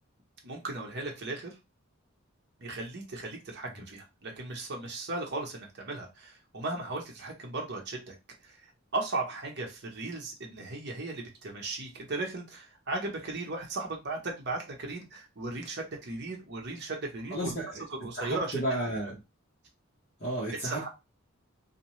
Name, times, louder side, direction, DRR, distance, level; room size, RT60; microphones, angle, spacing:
voice 1, 0.4-1.6 2.6-8.1 8.4-8.6 8.9-17.5 17.9-18.5 20.6-20.9, right 2 dB, 55° right, 1 dB, 0.9 m, -36 dB
voice 2, 17.3-17.8 18.2-19.2 20.2-20.9, right 1 dB, 40° left, -6 dB, 1.0 m, -33 dB
2.7 x 2.2 x 3.0 m, 0.25 s
head